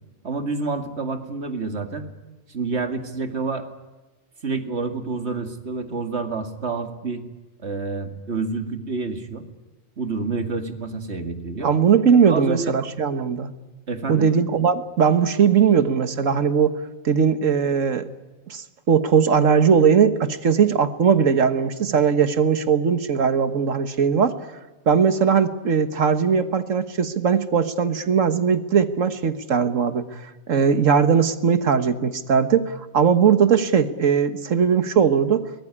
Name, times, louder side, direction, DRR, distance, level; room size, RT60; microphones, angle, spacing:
voice 1, 0.2-2.1 2.5-3.7 4.4-7.2 7.6-9.5 10.0-11.7 12.3-12.7 13.9-14.3, right 4 dB, 55° right, 6 dB, 2.4 m, -28 dB
voice 2, 11.6-13.5 14.1-18.1 18.5-24.4 24.9-30.1 30.5-35.4, right 6 dB, 75° right, 10 dB, 1.7 m, -19 dB
23.0 x 20.0 x 9.9 m, 1.2 s
omnidirectional pair, 1.4 m